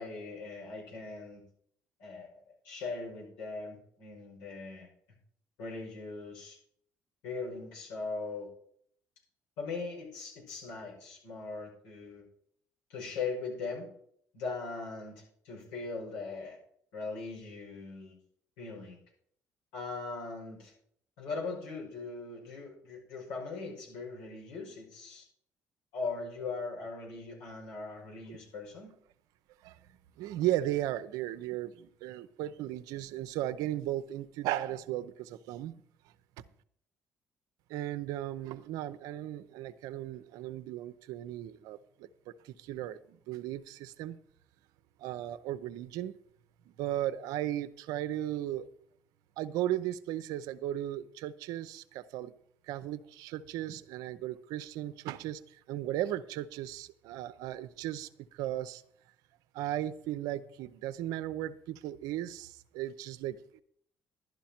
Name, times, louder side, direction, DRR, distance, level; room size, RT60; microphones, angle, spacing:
voice 1, 0.0-1.4 2.0-4.9 5.6-6.6 7.2-8.5 9.6-12.2 12.9-13.9 14.3-16.6 16.9-18.2 18.6-19.0 19.7-20.7 21.2-25.3 25.9-29.0, left 4 dB, 85° left, -2 dB, 5.6 m, -40 dB
voice 2, 30.2-35.7 37.7-42.1 42.4-44.2 45.0-46.1 46.8-48.7 49.4-52.3 52.7-58.8 59.5-63.6, right 13 dB, 80° right, 12 dB, 0.6 m, -36 dB
12.0 x 10.5 x 4.4 m, 0.65 s
supercardioid pair, 65°, 6 cm